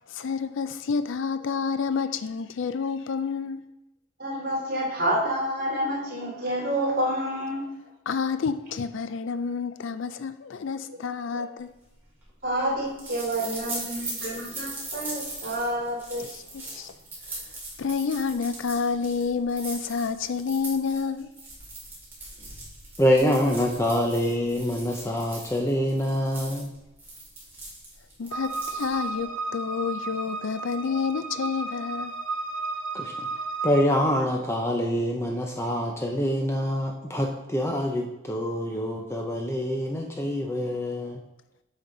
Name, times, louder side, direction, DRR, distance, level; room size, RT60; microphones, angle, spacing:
voice 1, 0.1-3.6 8.1-11.7 16.3-16.9 17.8-21.3 28.2-32.1, left 5 dB, 70° left, 0.4 m, -29 dB
voice 2, 4.2-7.7 11.3-11.4 12.4-16.2, right 1 dB, 45° right, 2.8 m, -28 dB
sound 1, 11.8-29.2, right 2 dB, 10° right, 2.0 m, -40 dB
voice 3, 23.0-26.7 32.9-33.3 33.6-41.2, equal, 15° left, 0.5 m, -25 dB
sound 2, 28.3-33.8, right 3 dB, 80° right, 1.2 m, -33 dB
8.3 x 5.2 x 3.9 m
head